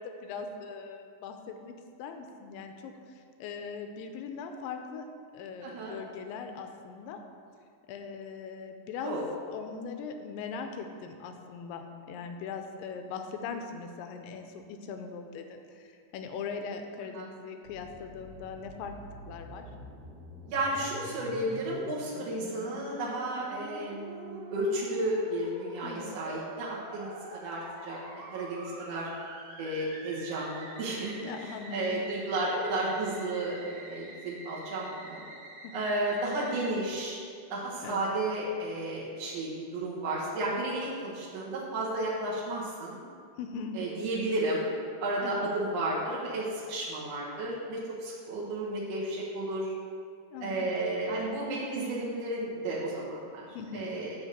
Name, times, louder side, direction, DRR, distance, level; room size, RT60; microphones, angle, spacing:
voice 1, 0.0-1.7 2.0-7.2 7.9-9.2 9.5-18.9 19.3-19.6 25.8-26.1 31.2-32.0 35.6-36.0 37.8-38.0 43.4-43.8 45.2-45.5 50.3-50.7 53.5-53.9, left 5 dB, 90° left, 5 dB, 2.3 m, -40 dB
voice 2, 5.6-6.0 9.0-9.2 17.2-17.3 20.4-29.1 29.6-35.3 35.7-37.2 37.5-43.0 43.7-44.7 45.0-49.7 50.4-53.5 53.7-54.2, right 1 dB, 60° right, -5 dB, 1.9 m, -33 dB
Musical instrument, 17.6-36.7, right 1 dB, 85° right, 2.8 m, -46 dB
9.5 x 3.5 x 6.7 m, 2.2 s
omnidirectional pair, 3.9 m